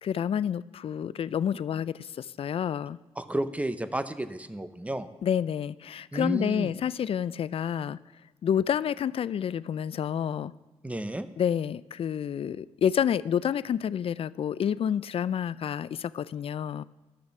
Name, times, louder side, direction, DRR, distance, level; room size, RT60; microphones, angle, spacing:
voice 1, 0.0-3.0 5.2-8.0 8.4-10.5 11.4-16.8, left 8 dB, 50° left, 19 dB, 0.3 m, -29 dB
voice 2, 3.2-5.1 6.1-6.7 10.8-11.3, right 1 dB, 10° right, 12 dB, 0.7 m, -31 dB
12.0 x 6.5 x 5.9 m, 1.1 s
cardioid pair, 70°, 12 cm